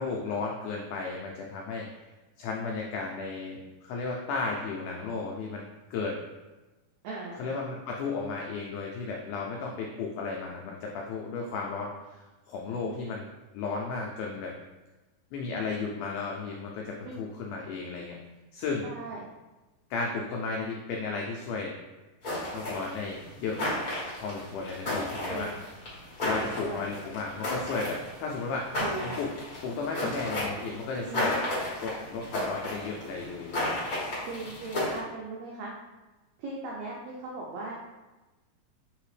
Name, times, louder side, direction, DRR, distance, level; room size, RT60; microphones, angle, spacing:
voice 1, 0.0-1.9 2.4-5.7 5.9-6.2 7.4-11.9 12.5-13.3 13.5-14.5 15.3-18.2 18.5-18.9 19.9-21.7 22.5-23.6 24.2-25.5 26.2-29.3 29.6-31.4 31.8-33.7, left 4 dB, 85° left, -1 dB, 1.7 m, -34 dB
voice 2, 7.0-7.4 17.0-17.1 18.8-19.2 25.3-25.6 26.4-26.8 28.8-29.1 30.0-30.1 31.1-31.4 34.3-35.7 36.4-37.7, right 3 dB, 85° right, -4 dB, 1.6 m, -38 dB
sound 1, 22.2-35.0, left 1 dB, 65° left, 0.8 m, -33 dB
4.8 x 3.3 x 3.2 m, 1.1 s
omnidirectional pair, 4.0 m